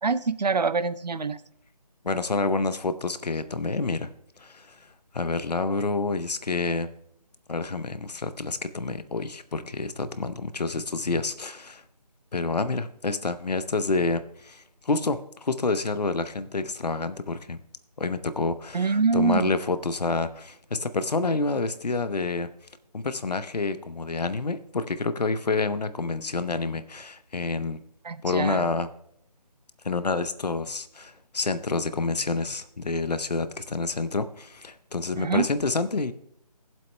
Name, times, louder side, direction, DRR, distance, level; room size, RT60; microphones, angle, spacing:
voice 1, 0.0-1.4 18.7-19.5 28.0-28.7 35.2-35.5, right 4 dB, 80° right, 14 dB, 0.6 m, -25 dB
voice 2, 2.0-4.1 4.4-4.8 5.1-6.9 7.5-11.8 12.3-17.6 18.0-22.5 22.9-27.8 28.2-28.9 29.8-36.1, left 3 dB, 75° left, 12 dB, 0.8 m, -28 dB
18.0 x 7.6 x 2.2 m, 0.74 s
figure-of-eight pair, 160°, 21 cm